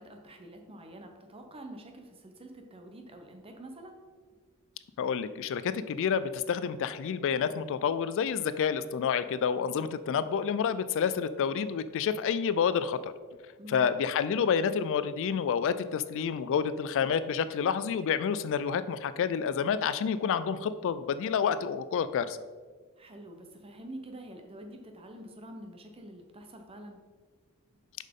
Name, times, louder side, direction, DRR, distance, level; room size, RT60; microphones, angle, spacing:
voice 1, 0.0-4.0 13.6-13.9 23.0-27.0, right 1 dB, 25° right, 4 dB, 0.8 m, -46 dB
voice 2, 5.0-13.1 13.7-22.4, left 7 dB, 60° left, 14 dB, 0.3 m, -29 dB
7.2 x 5.5 x 3.7 m, 1.5 s
head